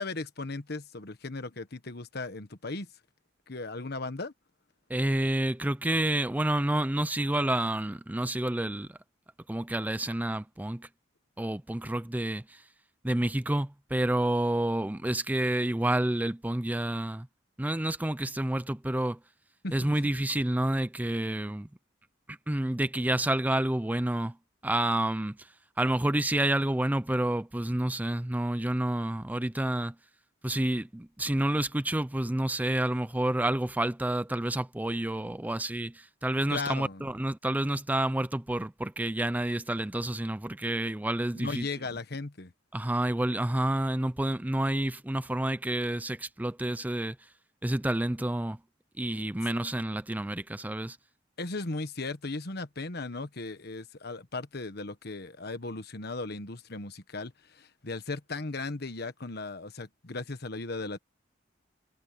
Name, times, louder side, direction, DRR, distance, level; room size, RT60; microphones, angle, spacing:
voice 1, 0.0-2.9 3.5-4.3 19.6-20.0 36.5-37.1 41.3-42.5 51.4-61.0, left 3 dB, 60° left, 1.4 m, -37 dB
voice 2, 4.9-9.0 9.5-10.9 11.4-12.6 13.0-17.3 17.6-19.2 19.7-21.7 22.3-24.4 24.6-25.5 25.8-29.9 30.4-41.7 42.7-47.2 47.6-48.6 49.0-51.0, right 1 dB, 10° right, 0.5 m, -29 dB
head